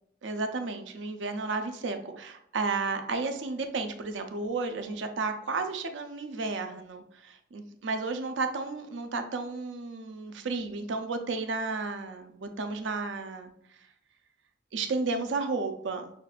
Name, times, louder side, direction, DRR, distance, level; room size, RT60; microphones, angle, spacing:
voice 1, 0.2-13.5 14.7-16.1, right 3 dB, 75° right, 7 dB, 0.5 m, -33 dB
5.8 x 2.5 x 2.4 m, 0.72 s
head